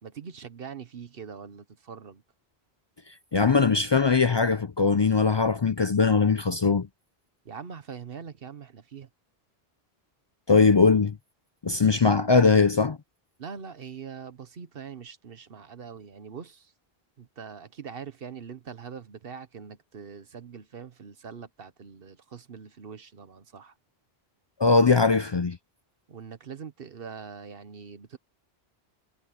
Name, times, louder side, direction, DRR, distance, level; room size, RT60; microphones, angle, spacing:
voice 1, 0.0-2.2 7.4-9.1 13.4-16.7 17.2-23.7 26.1-28.2, right 6 dB, 65° right, 1.2 m, -42 dB
voice 2, 3.3-6.9 10.5-11.2 11.6-13.0 24.6-25.6, left 4 dB, 45° left, 0.3 m, -20 dB
omnidirectional pair, 1.1 m